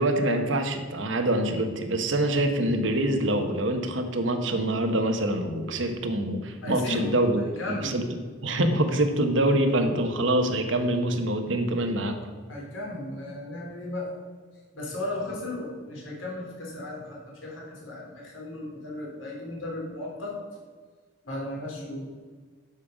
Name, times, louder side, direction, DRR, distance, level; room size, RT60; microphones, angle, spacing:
voice 1, 0.0-8.0 8.4-12.2, right 1 dB, 70° right, 6 dB, 1.1 m, -25 dB
voice 2, 6.6-8.0 12.5-14.1 14.7-20.4 21.2-22.1, left 2 dB, 85° left, -3 dB, 3.3 m, -35 dB
12.0 x 5.4 x 5.1 m, 1.5 s
head